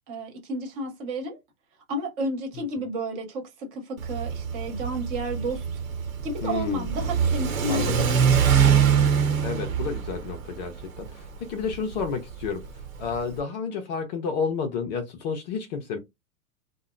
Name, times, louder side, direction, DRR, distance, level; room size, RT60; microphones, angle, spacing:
voice 1, 0.1-1.4 1.9-5.6 6.2-8.3, right 1 dB, 40° right, 1.2 m, -32 dB
Car / Accelerating revving vroom, 4.0-13.4, right 7 dB, 70° right, 1.0 m, -24 dB
voice 2, 6.4-6.9 7.7-8.1 9.4-16.0, left 5 dB, 30° left, 0.5 m, -31 dB
2.7 x 2.1 x 2.4 m
figure-of-eight pair, 105°, 43 cm